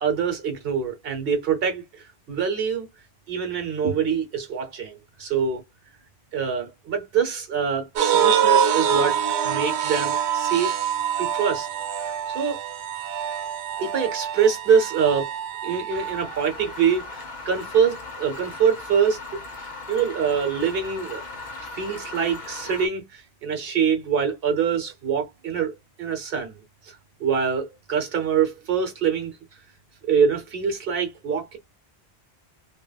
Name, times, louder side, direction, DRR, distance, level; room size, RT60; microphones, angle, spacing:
voice 1, 0.0-2.9 3.3-5.6 6.3-9.2 9.4-10.7 11.2-11.7 12.3-12.6 13.8-15.3 15.6-19.4 19.9-21.2 21.5-26.9 27.2-29.3 30.0-31.6, right 7 dB, 65° right, 1.1 m, -24 dB
sound 1, 8.0-16.3, right 8 dB, 85° right, 0.9 m, -25 dB
sound 2, 15.9-22.9, left 3 dB, 50° left, 0.7 m, -38 dB
2.8 x 2.3 x 2.3 m
omnidirectional pair, 1.1 m